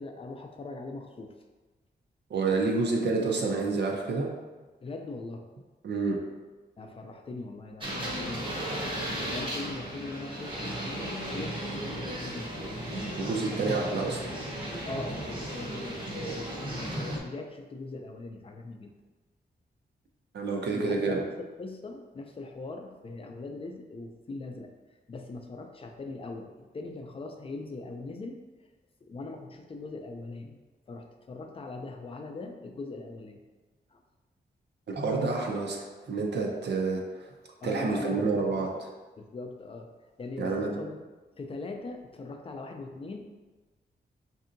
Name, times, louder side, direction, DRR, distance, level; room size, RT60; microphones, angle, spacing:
voice 1, 0.0-1.3 3.2-3.3 4.8-5.5 6.8-12.8 13.5-14.0 14.3-14.5 14.8-18.9 20.7-24.7 25.1-28.4 29.0-30.6 30.9-33.4 33.9-34.0 37.6-38.3 39.2-39.9 40.2-41.0 41.3-43.2, left 3 dB, 30° left, 4 dB, 0.4 m, -41 dB
voice 2, 2.3-4.3 5.8-6.2 13.2-14.2 20.3-21.2 34.9-37.3 37.6-38.9 40.4-40.8, right 3 dB, 70° right, 0 dB, 0.6 m, -29 dB
sound 1, 7.8-17.2, right 1 dB, 30° right, 0.7 m, -35 dB
5.3 x 2.6 x 2.6 m, 1.2 s
wide cardioid pair, 160°, 18 cm